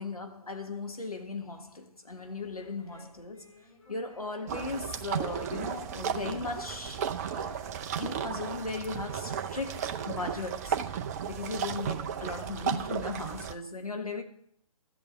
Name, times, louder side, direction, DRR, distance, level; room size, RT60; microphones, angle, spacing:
voice 1, 0.0-3.5 3.9-7.6 8.0-10.8 11.3-14.2, left 3 dB, 80° left, 1.8 m, -37 dB
sound 1, 2.1-10.6, left 3 dB, 60° left, 3.4 m, -61 dB
Human voice, 3.2-10.6 11.2-12.6, left 2 dB, 25° left, 3.5 m, -58 dB
sound 2, 4.5-13.5, right 8 dB, 25° right, 0.6 m, -34 dB
13.0 x 8.4 x 5.7 m
figure-of-eight pair, 135°, 19 cm